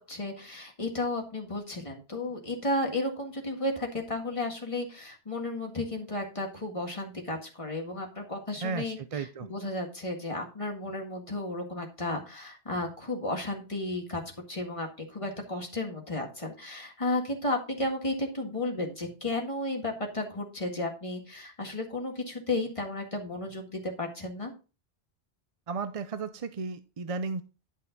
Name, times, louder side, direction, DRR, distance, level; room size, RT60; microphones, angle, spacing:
voice 1, 0.1-14.2 14.5-24.5, left 2 dB, 30° left, 2 dB, 2.0 m, -33 dB
voice 2, 8.6-9.5 25.7-27.4, right 4 dB, 45° right, 11 dB, 0.5 m, -34 dB
11.0 x 5.6 x 3.9 m, 0.33 s
omnidirectional pair, 1.0 m